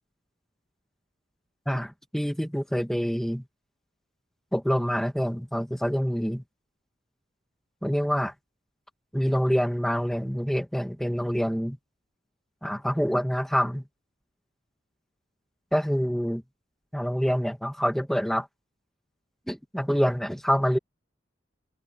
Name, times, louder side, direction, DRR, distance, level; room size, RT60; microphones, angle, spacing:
voice 1, 1.7-3.4 4.5-6.4 7.8-8.3 9.1-11.8 12.6-13.8 15.7-16.4 16.9-18.5 19.5-20.8, equal, ahead, 2.0 m, -26 dB
head